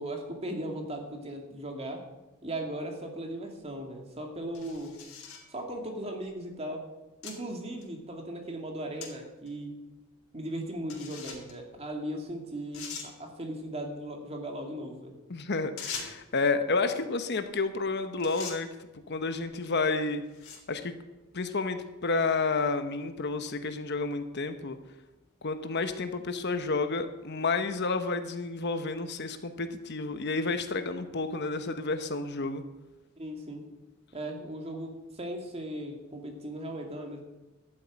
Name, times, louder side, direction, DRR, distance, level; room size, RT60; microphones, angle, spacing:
voice 1, 0.0-2.0 2.4-4.9 5.5-6.8 7.2-9.7 10.3-15.1 33.2-33.6 34.1-37.2, right 1 dB, 30° right, 2 dB, 2.4 m, -37 dB
sound 1, 3.6-3.7 4.5-5.5 6.3-6.4 7.2-7.4 7.8-7.9 9.0-9.1 9.5-9.6 10.9-11.5 12.2-12.3 12.7-13.1 15.8-16.3 17.7-17.9 18.2-18.6 19.4-19.6 20.2-20.7, left 6 dB, 80° left, 3.4 m, -41 dB
voice 2, 15.3-18.7 19.1-20.2 20.7-21.0 21.3-24.8 25.4-32.6, left 3 dB, 50° left, 9 dB, 0.9 m, -30 dB
12.5 x 7.7 x 8.9 m, 1.1 s
head